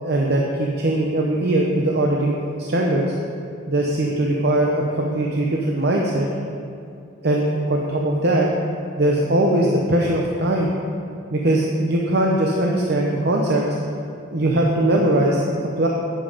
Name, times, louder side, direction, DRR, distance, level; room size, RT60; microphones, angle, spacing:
voice 1, 0.0-3.1 3.7-6.3 7.2-8.5 9.0-10.7 11.3-13.6 14.3-15.9, right 1 dB, 55° right, -1 dB, 0.9 m, -20 dB
9.5 x 8.9 x 5.1 m, 2.5 s
head